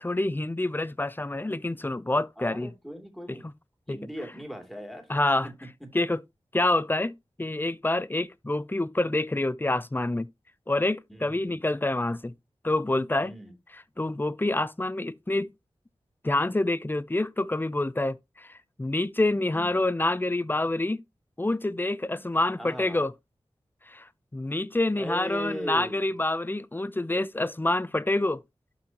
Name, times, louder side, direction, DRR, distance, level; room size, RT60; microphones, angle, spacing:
voice 1, 0.0-2.7 3.3-3.4 3.9-4.0 5.1-5.5 5.9-6.2 6.5-7.1 7.4-10.3 10.7-12.3 12.6-13.3 14.0-15.5 16.2-21.0 21.4-23.1 23.9-28.4, left 2 dB, 20° left, 0.5 m, -27 dB
voice 2, 2.4-3.5 3.9-5.1 5.4-5.9 11.1-11.6 13.2-13.6 19.5-19.8 22.0-22.3 22.6-23.0 24.9-26.1, equal, 5° left, 3.0 m, -39 dB
12.0 x 4.4 x 2.9 m
cardioid pair, 40°, 10 cm